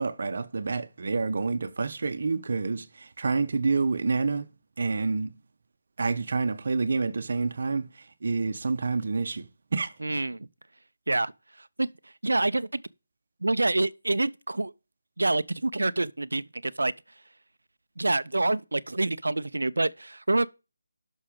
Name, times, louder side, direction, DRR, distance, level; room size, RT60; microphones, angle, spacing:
voice 1, 0.0-4.5 4.8-5.3 6.0-7.9 8.2-9.4 9.7-9.9, right 4 dB, 55° right, 1.1 m, -28 dB
voice 2, 10.0-10.5 11.1-11.3 11.6-11.9 12.2-12.8 13.4-14.7 15.2-16.9 18.0-20.5, right 2 dB, 80° right, 0.6 m, -27 dB
11.5 x 6.4 x 5.3 m
figure-of-eight pair, 160°, 0 cm